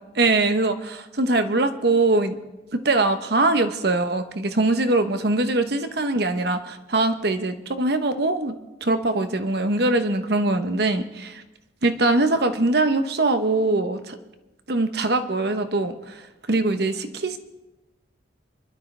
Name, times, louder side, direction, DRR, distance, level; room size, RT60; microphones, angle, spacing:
voice 1, 0.2-2.4 2.7-11.4 11.8-14.2 14.7-16.2 16.5-17.4, right 2 dB, 60° right, 8 dB, 1.0 m, -22 dB
24.5 x 12.0 x 3.4 m, 1.0 s
head